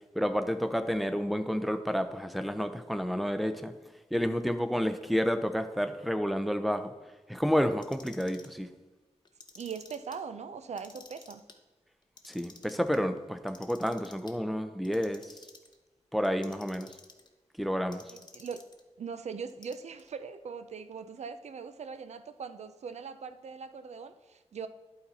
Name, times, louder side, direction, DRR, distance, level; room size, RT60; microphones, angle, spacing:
voice 1, 0.1-3.7 4.1-6.9 7.3-8.7 12.3-15.3 16.1-16.9 17.6-18.0, equal, ahead, 9 dB, 0.5 m, -30 dB
Clock, 7.7-8.6 9.2-10.2 10.6-11.6 12.0-13.0 13.5-14.3 14.8-15.8 16.2-17.3 17.9-18.8 19.5-20.1, left 3 dB, 40° left, 0.7 m, -53 dB
voice 2, 9.6-11.4 18.1-18.6 19.0-24.7, right 6 dB, 75° right, 11 dB, 0.5 m, -41 dB
11.5 x 4.2 x 4.2 m, 1.2 s
wide cardioid pair, 140°, 12 cm